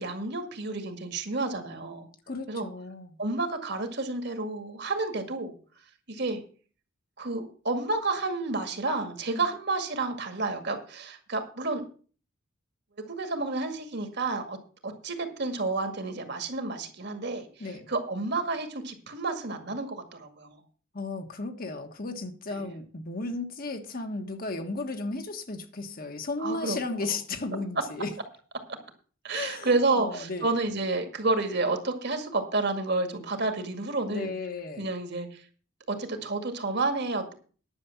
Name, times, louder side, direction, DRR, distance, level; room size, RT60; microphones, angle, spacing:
voice 1, 0.0-2.1 2.5-2.7 3.2-5.5 6.1-6.4 7.2-11.8 13.1-14.6 14.8-20.6 22.5-22.7 26.4-26.8 27.1-27.2 29.2-34.3 34.8-35.4 35.9-37.3, right 3 dB, 55° right, 2.0 m, -30 dB
voice 2, 2.3-3.1 9.3-9.4 17.6-17.9 20.9-28.1 29.3-30.5 34.1-34.9, left 3 dB, 45° left, 1.4 m, -34 dB
10.5 x 6.8 x 7.2 m
head